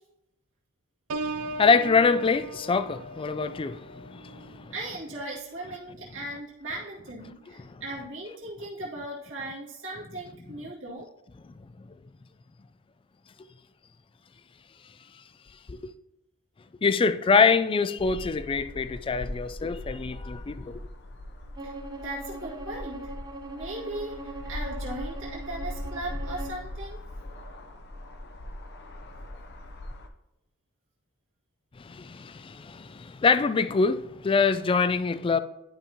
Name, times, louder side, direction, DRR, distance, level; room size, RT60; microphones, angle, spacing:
Piano, 1.1-6.7 7.2-7.5, right 3 dB, 85° right, 0.5 m, -40 dB
voice 1, 1.2-4.7 7.6-7.8 11.4-11.7 15.7-15.8 16.8-20.8 31.8-35.4, left 5 dB, 25° left, 0.3 m, -25 dB
voice 2, 4.7-11.1 21.6-23.0 23.5-27.0, right 1 dB, 60° right, 2.0 m, -38 dB
sound 1, 18.0-30.1, left 1 dB, 50° left, 0.7 m, -40 dB
Bowed string instrument, 21.5-26.6, right 2 dB, 20° right, 0.7 m, -41 dB
11.0 x 5.3 x 2.8 m
head